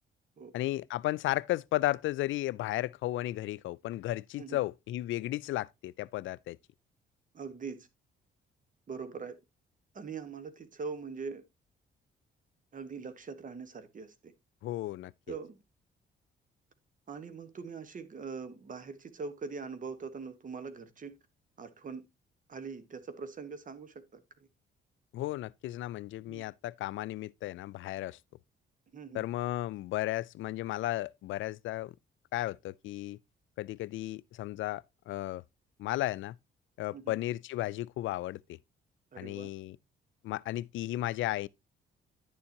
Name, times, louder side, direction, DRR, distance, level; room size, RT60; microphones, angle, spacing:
voice 1, 0.5-6.6 14.6-15.1 25.1-28.2 29.1-31.9 32.3-33.2 33.6-35.4 35.8-36.4 36.8-38.6 39.2-39.8 40.2-41.5, left 15 dB, 75° left, 0.4 m, -34 dB
voice 2, 7.3-7.9 8.9-9.4 9.9-11.4 12.7-14.3 15.3-15.6 17.1-21.2 21.6-22.0 22.5-24.2 26.3-26.5 28.9-29.3 36.9-37.2 39.1-39.5, right 5 dB, 40° right, 1.3 m, -42 dB
10.5 x 7.0 x 2.9 m
cardioid pair, 90°, 20 cm